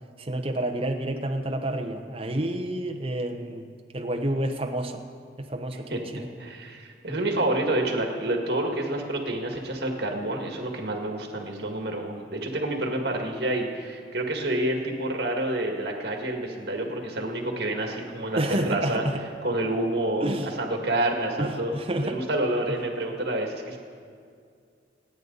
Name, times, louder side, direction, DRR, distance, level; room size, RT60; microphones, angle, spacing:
voice 1, 0.2-3.6 3.9-5.0 5.4-6.3 18.4-19.2 20.2-20.5 21.4-22.2, right 1 dB, 30° right, 4 dB, 1.0 m, -29 dB
voice 2, 6.4-19.0 19.4-23.8, right 1 dB, 60° right, 2 dB, 1.9 m, -28 dB
28.0 x 9.6 x 4.0 m, 2.2 s
head